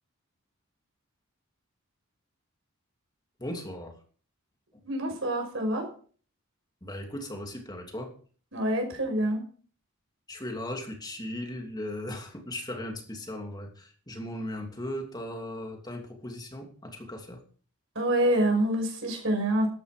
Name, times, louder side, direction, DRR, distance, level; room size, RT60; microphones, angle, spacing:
voice 1, 3.4-3.9 6.8-8.1 10.3-17.4, left 1 dB, 20° left, 3 dB, 2.8 m, -37 dB
voice 2, 4.8-5.9 8.5-9.4 18.0-19.7, right 1 dB, 65° right, 3 dB, 5.6 m, -26 dB
13.5 x 10.5 x 5.1 m, 0.43 s
head